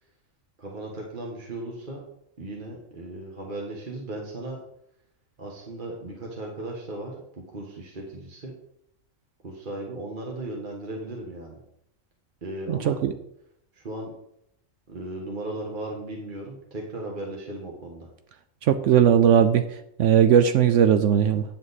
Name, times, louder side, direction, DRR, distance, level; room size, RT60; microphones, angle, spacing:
voice 1, 0.6-2.0 2.4-4.6 5.4-7.2 7.5-8.5 9.4-11.6 12.4-13.0 13.7-14.1 14.9-18.1, right 2 dB, 40° right, -1 dB, 1.4 m, -36 dB
voice 2, 12.7-13.1 18.7-19.6 20.0-21.4, right 9 dB, 70° right, 9 dB, 0.9 m, -18 dB
9.2 x 7.5 x 4.1 m, 0.76 s
omnidirectional pair, 1.4 m